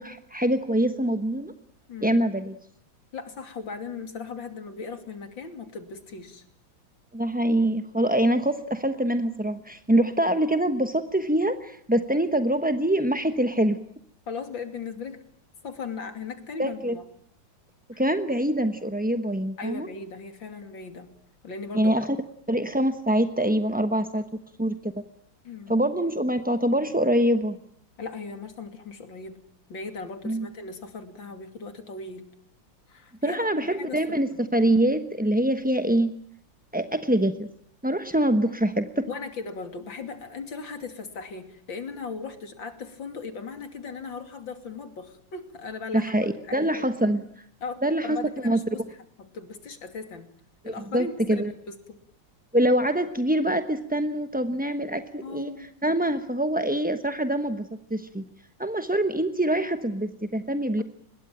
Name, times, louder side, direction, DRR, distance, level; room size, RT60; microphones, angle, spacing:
voice 1, 0.0-1.5 2.0-2.5 7.1-13.8 16.6-17.0 18.0-19.9 21.7-22.1 22.5-24.2 24.6-24.9 25.7-27.6 30.2-30.5 33.2-36.1 36.7-37.5 37.8-39.1 45.9-47.2 47.8-48.2 48.4-48.6 50.6-51.5 52.5-58.2 58.6-60.8, right 1 dB, 10° right, 8 dB, 0.6 m, -24 dB
voice 2, 3.1-6.4 14.3-15.2 15.6-17.0 17.9-18.0 19.6-21.2 21.4-22.0 25.4-25.8 28.0-29.4 29.7-32.2 32.9-34.0 39.1-46.8 47.6-48.8 49.2-50.3 50.7-52.0 55.2-55.7, left 4 dB, 85° left, 8 dB, 3.4 m, -38 dB
24.5 x 21.5 x 9.0 m, 0.65 s
omnidirectional pair, 2.0 m